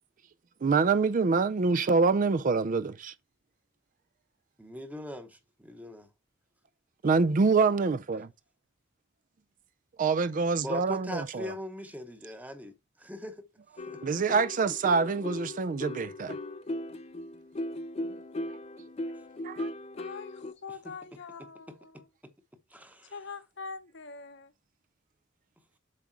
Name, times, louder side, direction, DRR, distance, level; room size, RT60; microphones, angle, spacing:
voice 1, 0.6-3.1 7.0-8.3 10.0-11.5 14.0-16.4 19.4-19.7, right 4 dB, 40° right, 0.4 m, -26 dB
voice 2, 4.6-6.1 10.6-13.5 13.9-14.2 20.8-21.0 21.4-22.3 22.7-23.2, equal, 10° right, 0.9 m, -42 dB
sound 1, 13.8-20.5, left 1 dB, 30° left, 0.5 m, -38 dB
voice 3, 20.0-22.0 23.0-24.5, left 4 dB, 60° left, 0.9 m, -44 dB
7.6 x 3.6 x 4.5 m
head